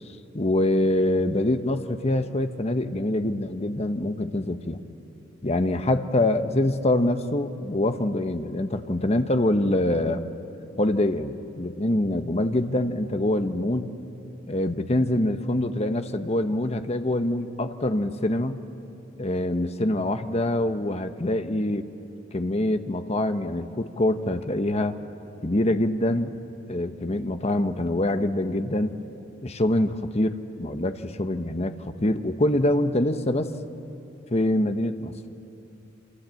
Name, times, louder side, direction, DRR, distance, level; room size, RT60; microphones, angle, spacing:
voice 1, 0.3-4.8 5.4-10.2 10.8-13.9 14.5-18.6 19.2-21.9 22.3-25.0 25.4-26.3 26.7-28.9 29.4-33.5 34.3-35.1, left 1 dB, 30° left, 8 dB, 1.0 m, -25 dB
28.0 x 26.5 x 7.7 m, 2.9 s
head